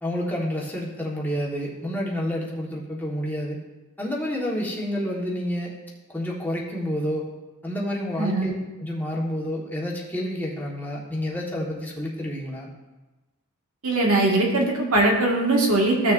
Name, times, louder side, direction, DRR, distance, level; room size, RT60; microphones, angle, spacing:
voice 1, 0.0-3.6 4.0-5.7 6.1-7.2 7.6-8.5 8.8-12.7, equal, 10° left, -4 dB, 1.5 m, -29 dB
voice 2, 8.2-8.5 13.8-16.1, right 2 dB, 80° right, -1 dB, 1.9 m, -21 dB
15.0 x 6.4 x 2.6 m, 1.1 s
head